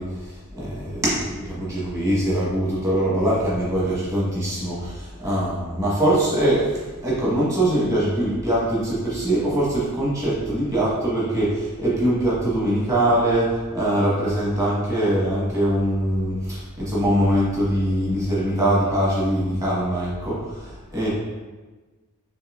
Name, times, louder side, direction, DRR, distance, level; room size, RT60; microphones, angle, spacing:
voice 1, 0.0-21.1, right 1 dB, 15° right, -8 dB, 1.3 m, -22 dB
5.5 x 3.1 x 2.5 m, 1.3 s
head